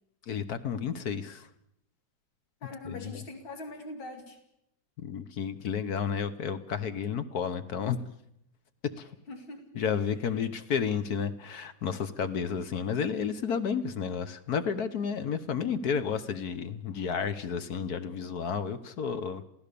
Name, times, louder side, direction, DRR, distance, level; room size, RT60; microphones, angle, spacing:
voice 1, 0.3-1.5 2.8-3.2 5.0-8.0 9.0-9.1 9.7-19.4, left 7 dB, 55° left, 11 dB, 1.4 m, -31 dB
voice 2, 2.6-4.4 9.3-9.6, left 2 dB, 80° left, 5 dB, 3.2 m, -42 dB
28.0 x 16.0 x 6.9 m, 0.78 s
omnidirectional pair, 2.1 m